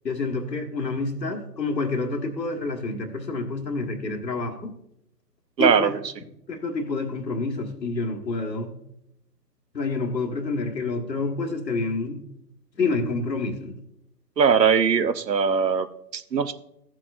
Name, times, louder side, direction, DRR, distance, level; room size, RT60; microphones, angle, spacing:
voice 1, 0.0-4.7 5.6-5.9 6.5-8.7 9.7-12.2 12.8-13.7, left 3 dB, 85° left, 3 dB, 1.7 m, -28 dB
voice 2, 5.6-6.0 14.4-15.9 16.1-16.5, right 6 dB, 85° right, 12 dB, 0.9 m, -20 dB
14.5 x 7.5 x 2.6 m, 0.79 s
figure-of-eight pair, 140°, 49 cm